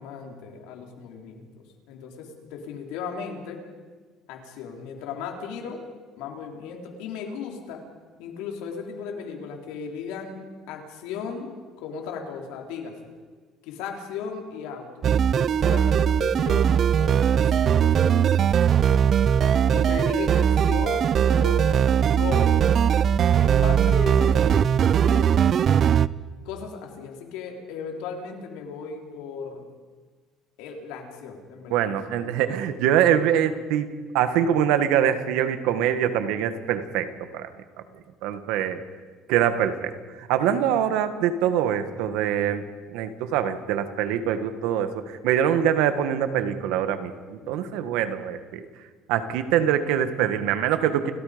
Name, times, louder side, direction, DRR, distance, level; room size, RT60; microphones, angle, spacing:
voice 1, 0.0-1.5 1.9-3.6 4.3-5.8 6.2-7.8 8.2-10.4 10.7-13.1 13.6-18.5 18.8-19.2 19.7-22.7 23.3-25.3 26.4-29.7 30.6-31.9 47.4-47.8, left 5 dB, 85° left, 1 dB, 3.9 m, -36 dB
sound 1, 15.0-26.1, right 8 dB, 45° right, 0.5 m, -20 dB
voice 2, 31.7-33.9 34.1-37.5 38.2-38.8 39.3-42.6 42.9-48.7 49.1-51.1, right 9 dB, 85° right, 9 dB, 1.7 m, -24 dB
30.0 x 17.0 x 5.2 m, 1.5 s
cardioid pair, 115°, 0 cm